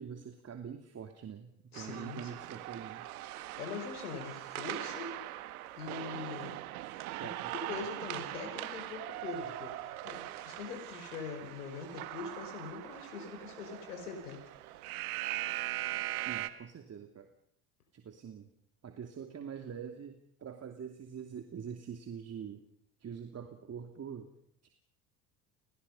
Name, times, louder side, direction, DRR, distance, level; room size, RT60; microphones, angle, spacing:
voice 1, 0.0-3.1 7.2-7.5 16.2-17.3 17.9-18.5 18.8-22.6 23.0-24.3 24.6-24.7, right 7 dB, 35° right, 5 dB, 2.9 m, -44 dB
voice 2, 1.7-2.3 3.6-5.4 5.8-6.6 7.2-7.3 7.7-14.4, left 5 dB, 85° left, 4 dB, 5.2 m, -43 dB
sound 1, 1.7-16.5, right 15 dB, 75° right, 1.7 m, -41 dB
29.5 x 20.5 x 5.6 m, 0.67 s
hypercardioid pair, 75°, 44 cm